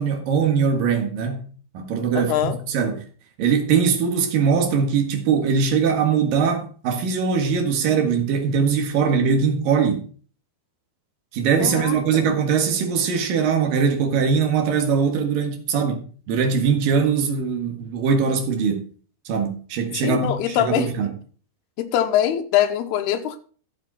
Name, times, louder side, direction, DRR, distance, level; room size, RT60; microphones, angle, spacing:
voice 1, 0.0-1.4 1.7-3.0 3.4-10.0 11.3-18.8 19.3-21.1, right 6 dB, 65° right, 3.2 m, -21 dB
voice 2, 2.1-2.6 11.6-12.3 20.0-20.9 21.8-23.4, left 11 dB, 85° left, 3.0 m, -23 dB
12.5 x 7.5 x 4.2 m
omnidirectional pair, 4.6 m